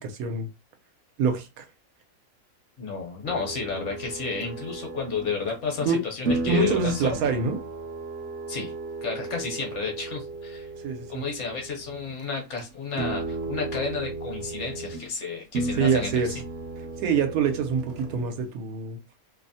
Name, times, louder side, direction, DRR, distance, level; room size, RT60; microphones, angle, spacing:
voice 1, 0.0-0.5 1.2-1.6 5.8-6.0 6.4-7.6 10.8-11.2 15.8-16.4 17.0-19.0, right 5 dB, 85° right, 1.1 m, -25 dB
voice 2, 2.8-7.2 8.5-8.7 9.0-10.7 11.1-16.1, left 5 dB, 60° left, 1.1 m, -31 dB
sound 1, 3.2-5.9 6.3-12.1 12.4-12.6 12.9-15.1 15.5-18.5, right 3 dB, 65° right, 0.7 m, -35 dB
2.7 x 2.0 x 2.6 m
omnidirectional pair, 1.5 m